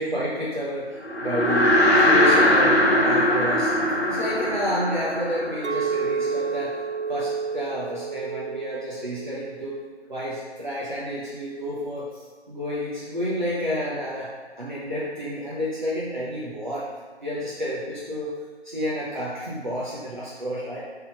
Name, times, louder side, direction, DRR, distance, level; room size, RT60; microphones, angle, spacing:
voice 1, 0.0-1.8 2.0-3.7 4.1-6.8 7.1-9.8 10.1-16.9 17.2-18.4 18.6-20.8, equal, 45° right, -8 dB, 1.1 m, -30 dB
sound 1, 1.0-6.5, left 1 dB, 65° left, 1.0 m, -20 dB
Chink clink, 5.6-10.0 10.3-10.8, right 5 dB, 85° right, 0.7 m, -30 dB
5.1 x 4.0 x 5.7 m, 1.4 s
figure-of-eight pair, 175°, 33 cm